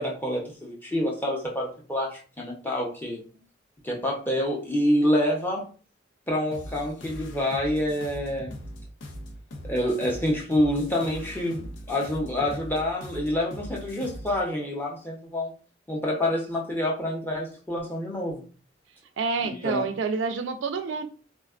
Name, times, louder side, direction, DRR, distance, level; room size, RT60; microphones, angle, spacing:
voice 1, 0.0-3.2 3.8-5.7 6.3-8.6 9.6-15.5 15.9-18.4 19.4-19.8, left 1 dB, 10° left, 0.6 m, -27 dB
sound 1, 6.5-14.4, equal, 85° left, 0.5 m, -40 dB
voice 2, 19.2-21.0, right 5 dB, 80° right, 0.4 m, -28 dB
3.5 x 2.2 x 2.3 m
head